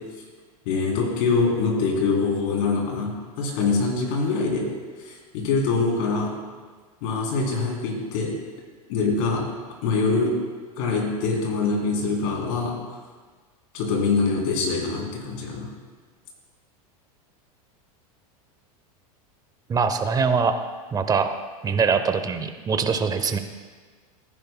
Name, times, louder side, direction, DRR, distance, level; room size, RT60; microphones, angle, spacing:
voice 1, 0.6-4.7 5.0-6.3 7.0-8.3 8.9-9.5 9.8-10.4 10.8-12.7 13.7-15.7, left 4 dB, 60° left, -1 dB, 3.4 m, -24 dB
voice 2, 19.7-20.6 20.9-21.3 21.6-23.4, right 5 dB, 20° right, 9 dB, 0.8 m, -23 dB
15.0 x 10.0 x 2.2 m, 1.5 s
hypercardioid pair, 115°, 19 cm